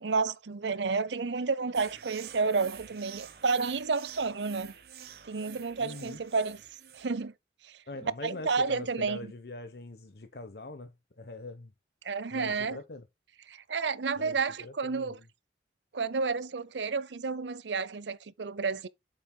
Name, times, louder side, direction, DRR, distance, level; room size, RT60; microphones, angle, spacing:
voice 1, 0.0-4.7 5.2-6.6 6.9-7.3 7.6-9.3 12.0-12.8 13.5-15.2 15.9-18.9, right 4 dB, 85° right, 0.7 m, -31 dB
sound 1, 1.7-7.2, right 9 dB, 60° right, 1.0 m, -48 dB
voice 2, 5.8-6.2 7.9-11.7 12.3-13.1 14.2-15.2, left 2 dB, 65° left, 0.9 m, -43 dB
7.7 x 7.4 x 2.2 m
head